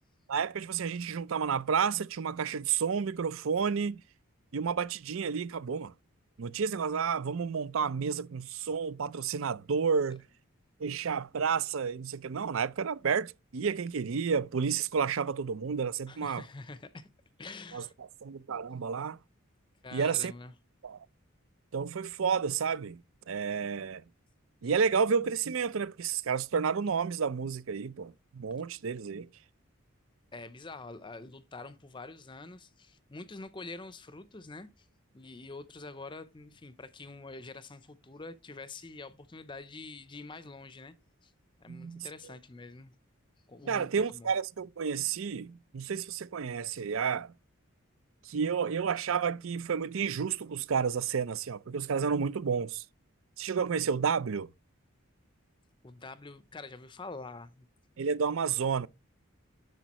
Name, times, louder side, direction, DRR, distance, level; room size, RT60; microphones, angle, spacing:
voice 1, 0.3-4.0 4.5-5.9 6.4-10.2 10.8-16.4 17.7-17.8 18.2-19.2 19.9-20.3 20.8-21.0 21.7-23.0 23.3-24.0 24.6-29.3 41.7-42.1 43.7-47.3 48.3-52.8 53.4-54.5 58.0-58.9, right 6 dB, 70° right, 0.5 m, -31 dB
voice 2, 16.1-17.1 17.4-17.9 18.5-18.6 19.8-20.5 30.3-34.9 35.1-40.9 41.2-41.3 41.6-42.9 43.5-44.3 55.8-57.7, left 3 dB, 20° left, 0.5 m, -46 dB
10.5 x 6.6 x 2.9 m
head